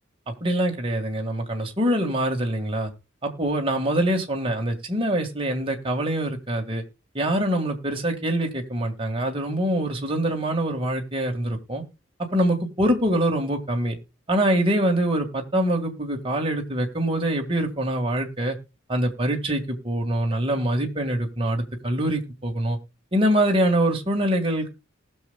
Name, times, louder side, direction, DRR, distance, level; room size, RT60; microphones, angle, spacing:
voice 1, 0.3-2.9 3.2-6.8 7.1-11.8 12.3-13.9 14.3-18.6 18.9-22.8 23.1-24.7, right 1 dB, 25° right, 2 dB, 1.8 m, -24 dB
19.5 x 6.7 x 2.3 m, 0.29 s
head